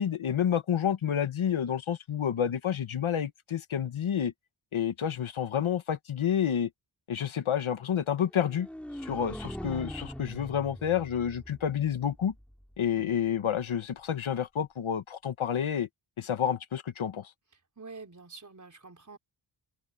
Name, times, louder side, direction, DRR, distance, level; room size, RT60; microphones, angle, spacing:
voice 1, 0.0-4.3 4.7-6.7 7.1-8.7 9.0-12.3 12.8-15.9 16.2-17.3, left 9 dB, 80° left, 1.6 m, -29 dB
sound 1, 8.4-12.4, equal, 5° left, 3.9 m, -41 dB
voice 2, 12.9-13.2 17.8-19.2, right 4 dB, 35° right, 4.9 m, -47 dB
open air
wide cardioid pair, 100°, 48 cm